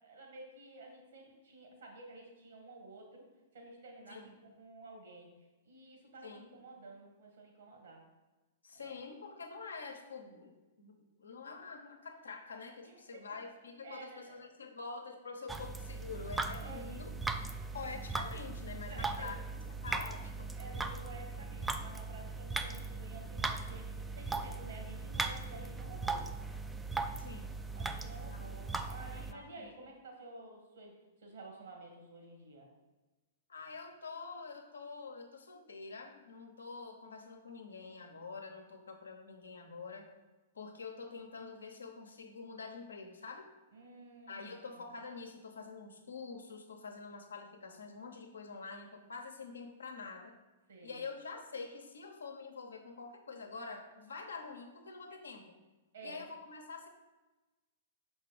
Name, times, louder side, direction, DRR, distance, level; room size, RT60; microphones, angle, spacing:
voice 1, 0.0-3.2 3.5-4.2 4.6-5.3 5.6-8.0 8.7-9.0 12.8-13.2 13.8-14.4 16.6-17.3 18.9-19.8 20.6-26.3 27.7-32.7 43.7-44.8 50.7-51.0 55.1-55.2 55.9-56.2, right 2 dB, 75° right, 1 dB, 2.0 m, -52 dB
voice 2, 8.6-17.1 17.7-19.4 19.8-20.5 27.1-27.5 28.3-28.4 29.3-29.7 33.5-40.1 40.5-43.5 44.3-50.3 50.8-55.5 56.0-56.9, left 4 dB, 85° left, 4 dB, 1.0 m, -46 dB
sound 1, 15.5-29.3, right 3 dB, 10° right, 0.4 m, -39 dB
5.9 x 4.4 x 5.0 m, 1.1 s
hypercardioid pair, 115°, 0 cm